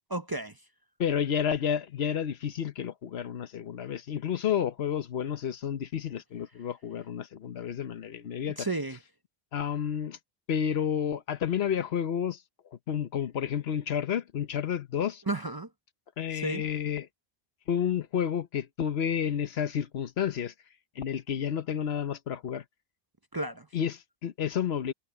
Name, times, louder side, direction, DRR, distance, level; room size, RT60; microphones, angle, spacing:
voice 1, 0.1-0.6 8.6-9.0 15.3-15.7 16.3-16.6 23.3-23.7, right 2 dB, 25° right, 0.6 m, -33 dB
voice 2, 1.0-8.7 9.5-10.2 10.5-12.4 12.9-15.2 16.2-17.1 17.7-20.5 21.0-22.6 23.7-24.9, left 8 dB, 80° left, 1.1 m, -30 dB
omnidirectional pair, 1.0 m